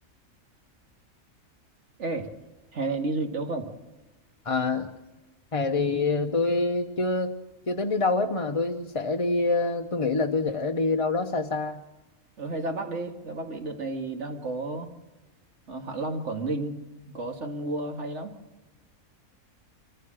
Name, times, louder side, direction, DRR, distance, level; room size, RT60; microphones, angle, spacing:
voice 1, 2.7-3.7 12.4-14.9 15.7-16.8 17.1-18.3, right 2 dB, 55° right, 5 dB, 2.1 m, -31 dB
voice 2, 4.4-4.9 5.5-7.3 7.7-11.8, left 3 dB, 30° left, 3 dB, 0.7 m, -26 dB
24.5 x 14.5 x 7.6 m, 1.1 s
omnidirectional pair, 1.5 m